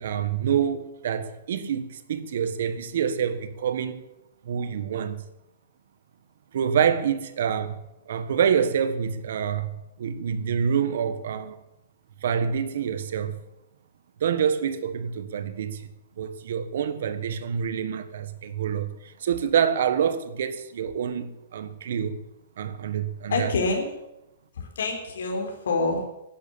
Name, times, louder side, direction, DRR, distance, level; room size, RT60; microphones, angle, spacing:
voice 1, 0.0-4.0 4.4-5.2 6.5-7.8 8.1-9.7 10.0-11.6 12.2-13.4 14.2-15.9 16.2-22.2 22.6-23.5, right 8 dB, 60° right, 1.4 m, -27 dB
voice 2, 23.3-23.9 24.6-26.0, left 3 dB, 80° left, 4.1 m, -26 dB
12.0 x 11.0 x 8.9 m
hypercardioid pair, 180°, 0 cm